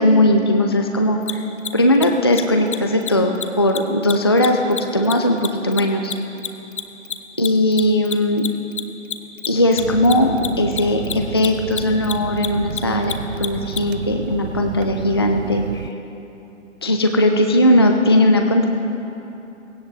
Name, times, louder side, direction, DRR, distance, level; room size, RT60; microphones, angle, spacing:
voice 1, 0.0-1.5 1.7-6.1 7.4-8.5 9.5-15.9 16.8-18.7, left 1 dB, 20° left, 3 dB, 0.4 m, -18 dB
Mechanisms, 1.2-1.3 1.6-1.7 1.9-2.1 2.3-2.4 2.7-2.8 3.0-3.1 3.3-3.4 3.7-6.5 6.7-13.8, left 8 dB, 40° left, 0.8 m, -27 dB
sound 1, 9.8-15.9, right 8 dB, 55° right, 0.5 m, -30 dB
17.0 x 17.0 x 3.6 m, 2.9 s
figure-of-eight pair, 135°, 38 cm